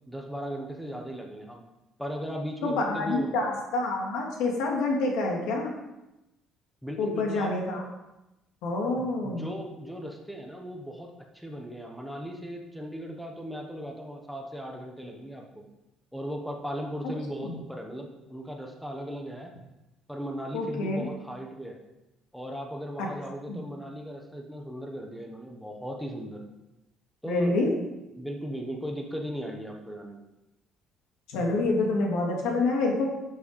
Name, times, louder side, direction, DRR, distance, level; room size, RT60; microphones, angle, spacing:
voice 1, 0.1-1.6 2.0-3.3 6.8-7.5 9.0-15.6 16.1-19.5 20.1-21.8 22.3-26.4 27.2-27.7 28.0-30.2, equal, ahead, 1 dB, 1.2 m, -37 dB
voice 2, 2.6-5.7 7.0-7.8 8.6-9.5 17.4-17.5 20.5-21.0 23.0-23.1 23.5-23.6 27.3-27.7 31.3-33.1, left 2 dB, 85° left, 0 dB, 3.2 m, -27 dB
12.0 x 7.8 x 5.4 m, 0.96 s
cardioid pair, 175°, 0 cm